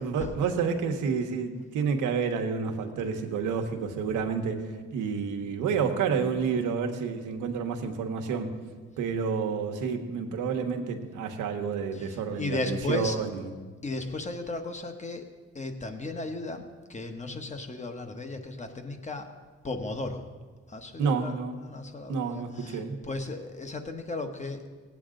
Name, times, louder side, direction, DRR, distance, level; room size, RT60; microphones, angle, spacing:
voice 1, 0.0-8.5 9.0-13.5 21.0-21.6 22.1-23.0, right 5 dB, 90° right, 4 dB, 1.2 m, -29 dB
voice 2, 11.9-13.2 13.8-15.2 15.5-19.3 19.6-20.3 20.7-21.3 21.6-24.6, left 2 dB, 25° left, 6 dB, 1.2 m, -35 dB
18.0 x 8.6 x 3.8 m, 1.4 s
cardioid pair, 90°, 30 cm